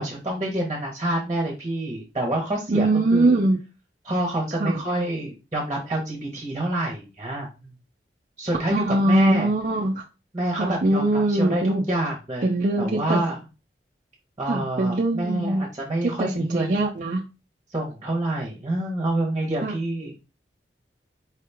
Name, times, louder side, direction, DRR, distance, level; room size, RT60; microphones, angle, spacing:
voice 1, 0.0-3.4 4.0-7.7 8.4-9.5 10.3-12.5 12.8-13.4 14.4-16.8 17.7-20.1, right 1 dB, 20° right, 1.1 m, -27 dB
voice 2, 2.7-3.6 4.6-4.8 8.7-10.0 10.6-11.8 12.4-13.2 14.5-15.6 16.0-17.2 19.6-19.7, right 2 dB, 45° right, 0.5 m, -22 dB
4.8 x 3.1 x 3.4 m
head